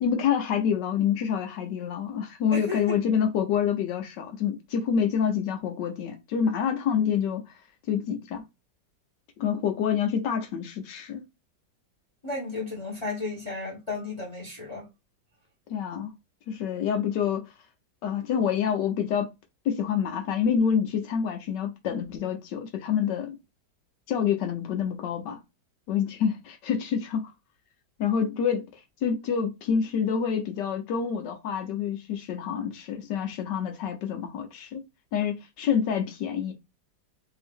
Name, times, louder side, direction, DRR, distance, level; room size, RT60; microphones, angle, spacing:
voice 1, 0.0-7.5 7.9-8.4 9.4-11.2 15.7-16.1 16.5-17.4 18.0-19.3 19.6-23.4 24.1-25.4 25.9-27.3 28.0-28.7 29.0-34.8 35.1-36.5, left 7 dB, 75° left, 1.3 m, -27 dB
voice 2, 2.5-3.0 12.2-14.8, left 2 dB, 20° left, 1.0 m, -33 dB
3.4 x 2.7 x 3.5 m
omnidirectional pair, 2.0 m